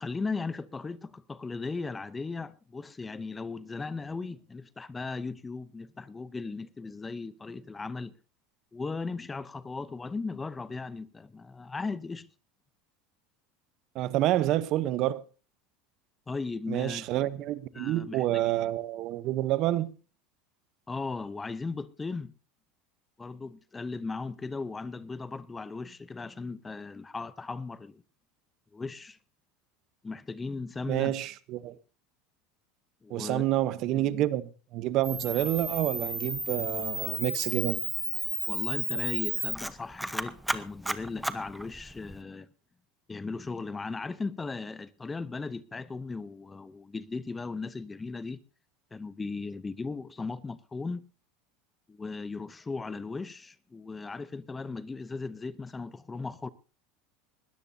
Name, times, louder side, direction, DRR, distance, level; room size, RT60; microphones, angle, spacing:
voice 1, 0.0-8.1 8.7-12.3 16.3-17.2 17.7-18.5 20.9-22.3 23.2-28.0 28.7-29.2 30.0-31.1 33.0-33.4 33.9-34.3 38.5-42.5 43.1-48.4 48.9-51.1 51.9-56.5, left 4 dB, 15° left, 0.7 m, -37 dB
voice 2, 13.9-15.2 16.7-19.9 30.9-31.7 33.1-37.8, right 14 dB, 55° right, 0.8 m, -28 dB
Camera, 35.0-42.2, right 1 dB, 5° right, 1.0 m, -33 dB
20.5 x 14.0 x 2.7 m
supercardioid pair, 120°, 0 cm